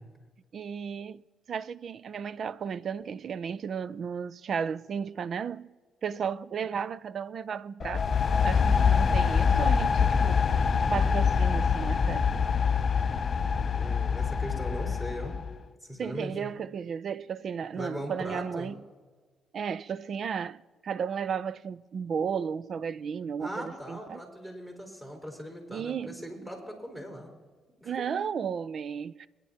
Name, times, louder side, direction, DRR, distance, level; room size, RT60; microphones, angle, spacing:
voice 1, 0.5-5.7 6.0-8.1 8.4-10.4 10.9-12.3 16.0-18.8 19.5-24.2 25.7-26.5 27.8-29.3, right 7 dB, 55° right, 0.4 m, -34 dB
sound 1, 7.8-15.6, left 6 dB, 45° left, 0.4 m, -25 dB
voice 2, 13.7-15.4 15.8-16.5 17.7-18.7 23.4-27.3 27.8-28.1, equal, 15° right, 4.3 m, -39 dB
23.5 x 10.5 x 2.8 m
cardioid pair, 90°, 0 cm